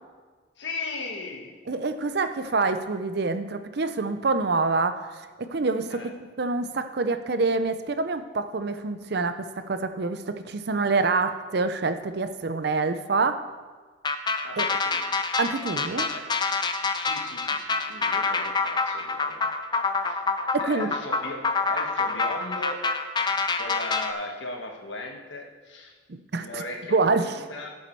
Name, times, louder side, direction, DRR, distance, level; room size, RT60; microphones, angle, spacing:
voice 1, 0.6-1.6 5.9-6.1 14.4-15.1 15.9-16.3 16.9-19.4 20.0-20.2 20.6-22.8 23.5-25.9 26.4-27.7, left 2 dB, 75° left, 2 dB, 1.5 m, -37 dB
voice 2, 1.7-5.1 5.4-6.1 6.4-13.4 14.6-14.7 15.4-16.1 20.6-20.9 26.1-26.6 26.9-27.4, right 3 dB, 60° right, 10 dB, 0.6 m, -26 dB
sound 1, 14.0-24.1, left 4 dB, 25° left, 0.5 m, -27 dB
13.5 x 7.1 x 4.6 m, 1.4 s
head